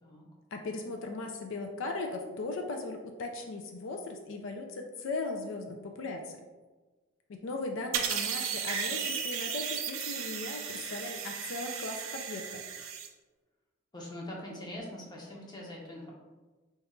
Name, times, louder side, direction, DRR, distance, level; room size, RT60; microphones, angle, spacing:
voice 1, 0.5-6.4 7.3-12.6, left 3 dB, 70° left, 3 dB, 0.4 m, -38 dB
sound 1, 7.9-13.1, right 7 dB, 80° right, 0.4 m, -35 dB
voice 2, 13.9-16.1, left 1 dB, 20° left, -2 dB, 0.6 m, -43 dB
4.1 x 2.3 x 3.6 m, 1.3 s
head